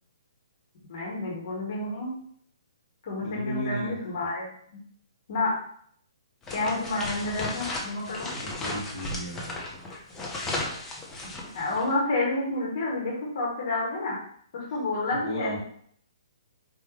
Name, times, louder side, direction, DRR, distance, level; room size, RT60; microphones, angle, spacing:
voice 1, 0.9-2.1 3.0-4.5 5.3-5.5 6.5-8.3 11.5-14.2 14.5-15.6, left 2 dB, 45° left, -4 dB, 1.7 m, -29 dB
voice 2, 3.2-4.0 8.3-9.6 15.1-15.6, equal, 60° left, -7 dB, 1.5 m, -35 dB
sound 1, 6.4-11.9, left 2 dB, 10° left, 0.7 m, -35 dB
4.6 x 2.9 x 3.2 m, 0.62 s
figure-of-eight pair, 125°, 3 cm